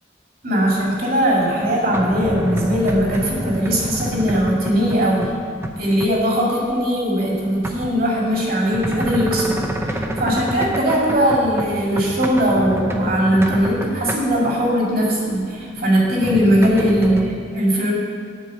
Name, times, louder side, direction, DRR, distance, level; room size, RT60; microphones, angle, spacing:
voice 1, 0.4-5.3 5.8-9.7 10.2-17.9, equal, 55° right, -4 dB, 2.3 m, -19 dB
sound 1, 1.3-5.4 5.6-6.2 6.7-14.6 15.2-17.3, right 1 dB, 15° right, 0.6 m, -28 dB
10.0 x 4.4 x 7.4 m, 2.3 s
head